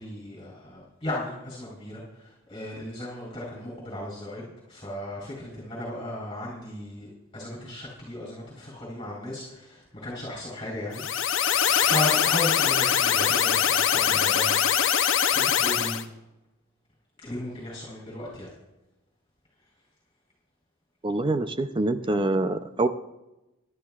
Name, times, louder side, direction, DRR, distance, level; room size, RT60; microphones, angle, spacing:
voice 1, 0.0-7.1 7.3-11.1 11.8-14.6 15.3-16.1 17.2-18.5, left 1 dB, 25° left, -4 dB, 3.6 m, -35 dB
sound 1, 10.9-16.0, left 9 dB, 65° left, 0.7 m, -23 dB
voice 2, 21.0-22.9, right 2 dB, 25° right, 10 dB, 0.5 m, -25 dB
23.5 x 11.5 x 2.4 m, 0.98 s
head